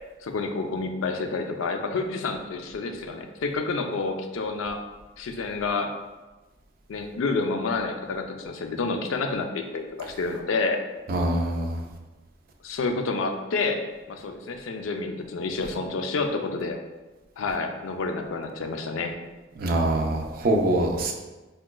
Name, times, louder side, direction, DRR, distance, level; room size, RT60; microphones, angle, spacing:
voice 1, 0.2-4.8 5.2-5.9 6.9-10.8 12.6-13.8 14.1-16.8 17.4-19.1, left 3 dB, 80° left, 5 dB, 0.4 m, -29 dB
voice 2, 11.1-11.8 19.6-21.1, right 1 dB, 45° right, 2 dB, 0.4 m, -24 dB
4.7 x 2.2 x 2.2 m, 1.2 s
head